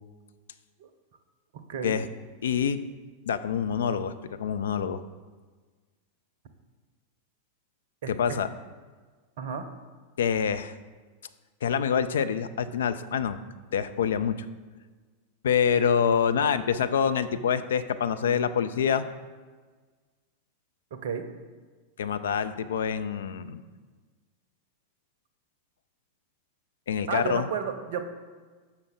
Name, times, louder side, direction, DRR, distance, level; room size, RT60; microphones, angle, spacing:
voice 1, 1.7-2.0 8.0-8.4 9.4-9.7 20.9-21.2 27.1-28.0, right 6 dB, 55° right, 7 dB, 0.6 m, -32 dB
voice 2, 2.4-2.8 3.3-5.0 8.1-8.5 10.2-10.7 11.6-13.4 13.7-14.5 15.4-19.1 22.0-23.6 26.9-27.5, left 7 dB, 65° left, 11 dB, 0.3 m, -26 dB
6.7 x 5.7 x 3.5 m, 1.4 s
figure-of-eight pair, 90°, 0 cm